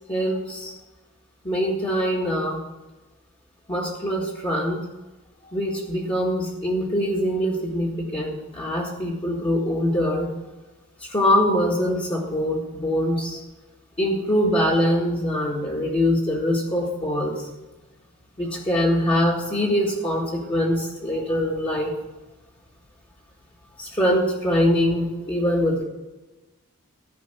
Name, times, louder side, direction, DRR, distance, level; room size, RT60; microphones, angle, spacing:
voice 1, 0.1-0.7 1.4-2.6 3.7-4.9 5.4-10.3 11.0-13.4 14.0-17.5 18.4-21.9 23.8-25.8, equal, 25° left, -5 dB, 1.8 m, -23 dB
13.5 x 5.2 x 6.7 m, 1.1 s
head